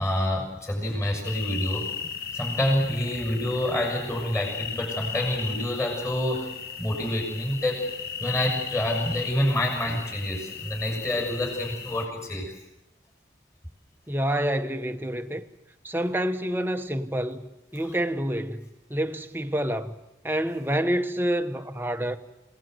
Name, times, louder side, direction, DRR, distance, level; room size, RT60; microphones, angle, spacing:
voice 1, 0.0-1.9 2.3-7.8 8.2-12.5, left 1 dB, 15° left, 6.3 m, -27 dB
sound 1, 1.2-12.1, left 7 dB, 55° left, 1.4 m, -36 dB
voice 2, 14.1-15.4 15.8-19.9 20.2-22.2, right 1 dB, 10° right, 1.1 m, -28 dB
29.0 x 18.5 x 7.9 m
head